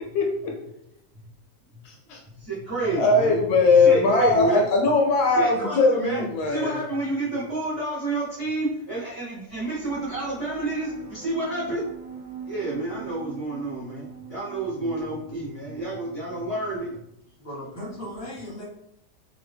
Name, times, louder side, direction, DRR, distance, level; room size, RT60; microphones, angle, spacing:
voice 1, 0.1-0.6 1.8-2.2 2.9-6.8, left 3 dB, 75° left, 1 dB, 1.1 m, -20 dB
voice 2, 2.4-3.4 3.7-4.6 5.3-11.8 12.5-16.9, right 2 dB, 30° right, -7 dB, 0.7 m, -29 dB
sound 1, 9.5-17.0, right 6 dB, 65° right, 1.0 m, -43 dB
voice 3, 17.4-18.6, equal, 10° left, -6 dB, 0.9 m, -37 dB
2.7 x 2.6 x 3.4 m, 0.79 s
omnidirectional pair, 1.8 m